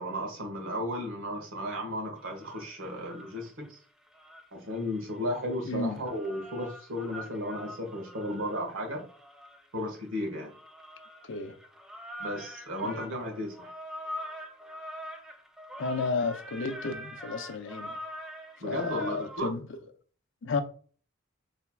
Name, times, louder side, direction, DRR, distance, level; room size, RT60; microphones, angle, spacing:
voice 1, 0.0-3.8 4.5-9.1 9.7-10.5 12.2-13.7 18.6-19.5, equal, 80° right, 1.5 m, -34 dB
sound 1, 2.2-3.7 4.1-19.4, equal, ahead, 0.4 m, -44 dB
voice 2, 5.7-6.0 11.2-11.5 12.8-13.0 15.8-17.9 18.6-19.6 20.4-20.6, left 4 dB, 65° left, 0.6 m, -32 dB
4.5 x 3.4 x 2.2 m
head